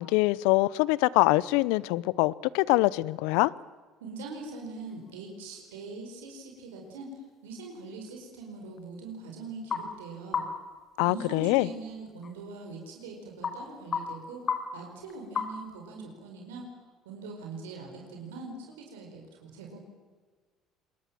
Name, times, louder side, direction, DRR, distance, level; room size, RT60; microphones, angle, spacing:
voice 1, 0.0-3.5 11.0-11.7, left 20 dB, 80° left, 0.7 m, -24 dB
voice 2, 4.0-7.1 7.4-10.4 11.0-16.7 17.0-19.8, right 3 dB, 90° right, 5.0 m, -42 dB
sound 1, 4.3-15.9, left 6 dB, 45° left, 4.1 m, -40 dB
27.0 x 21.5 x 7.7 m
hypercardioid pair, 70°, 0 cm